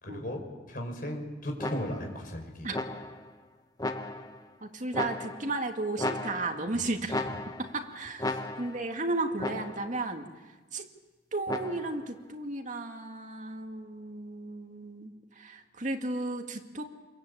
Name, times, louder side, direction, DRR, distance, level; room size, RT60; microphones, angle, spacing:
voice 1, 0.0-2.7 6.7-6.9 8.2-8.4, equal, 50° left, 3 dB, 5.7 m, -37 dB
sound 1, 1.6-2.2 2.7-3.3 3.8-4.5 4.9-5.6 6.0-6.7 7.1-7.8 8.2-8.9 9.4-10.0 11.5-12.1, left 2 dB, 20° left, 1.4 m, -35 dB
voice 2, 4.6-7.3 7.6-10.3 10.7-10.8 11.3-16.8, right 2 dB, 40° right, 3 dB, 2.4 m, -34 dB
27.5 x 22.5 x 8.7 m, 1.2 s
head